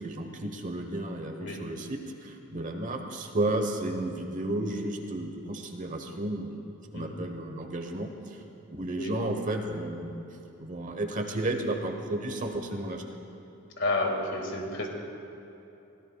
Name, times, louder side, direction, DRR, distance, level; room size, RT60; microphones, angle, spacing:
voice 1, 0.0-8.4 8.8-10.2 10.6-13.0, right 1 dB, 35° right, 4 dB, 1.1 m, -33 dB
voice 2, 13.8-14.9, left 2 dB, 60° left, 1 dB, 2.0 m, -30 dB
23.5 x 17.5 x 2.4 m, 2.9 s
head